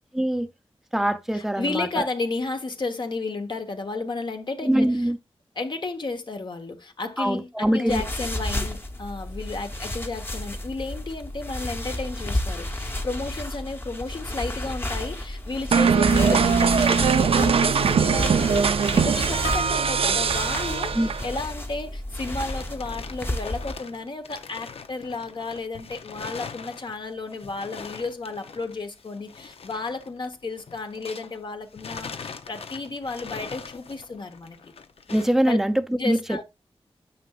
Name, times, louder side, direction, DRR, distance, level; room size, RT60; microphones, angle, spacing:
voice 1, 0.1-0.5 0.9-2.1 4.6-5.2 7.2-8.0 20.9-21.1 35.1-36.4, right 1 dB, 5° right, 0.6 m, -23 dB
voice 2, 1.3-4.9 5.6-34.6 35.5-35.6 35.9-36.4, left 3 dB, 50° left, 1.1 m, -32 dB
sound 1, 7.9-23.7, left 1 dB, 20° left, 1.0 m, -31 dB
sound 2, 15.7-21.4, right 6 dB, 75° right, 0.5 m, -21 dB
sound 3, 21.9-31.4 31.7-35.4, left 5 dB, 80° left, 0.6 m, -42 dB
9.4 x 5.7 x 2.4 m
wide cardioid pair, 100°, 10 cm